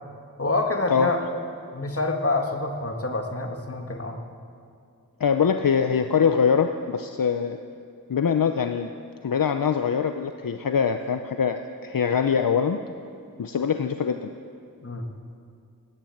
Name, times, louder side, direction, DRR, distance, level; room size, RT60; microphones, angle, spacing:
voice 1, 0.4-1.2 1.7-4.2 14.8-15.1, left 2 dB, 40° left, 3 dB, 1.8 m, -27 dB
voice 2, 5.2-7.6 8.1-8.9 9.2-12.8 13.4-14.3, left 7 dB, 75° left, 7 dB, 0.7 m, -23 dB
17.0 x 10.5 x 7.8 m, 2.3 s
wide cardioid pair, 45°, 34 cm